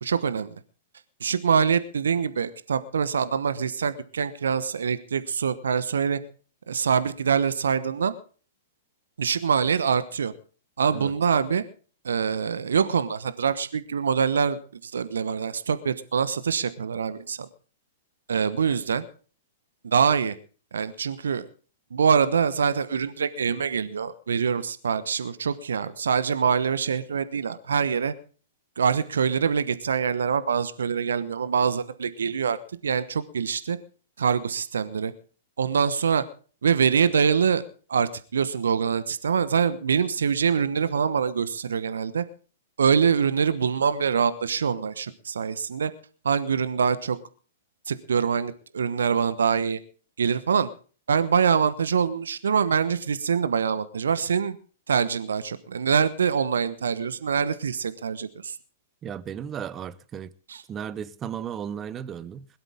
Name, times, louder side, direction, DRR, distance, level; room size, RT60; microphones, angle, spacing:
voice 1, 0.0-0.5 1.2-6.2 6.7-8.1 9.2-10.3 10.8-11.6 12.0-17.5 18.3-19.0 19.8-20.4 20.7-21.5 21.9-28.1 28.8-32.6 32.8-33.8 34.2-35.1 35.6-36.2 36.6-37.6 37.9-42.2 42.8-45.9 46.2-47.2 47.9-49.8 50.2-50.7 51.1-54.5 54.9-58.6 60.5-60.6, right 6 dB, 75° right, 1.1 m, -24 dB
voice 2, 59.0-60.3 60.7-62.5, right 8 dB, 25° right, 1.0 m, -35 dB
21.5 x 12.5 x 3.6 m
figure-of-eight pair, 110°, 0 cm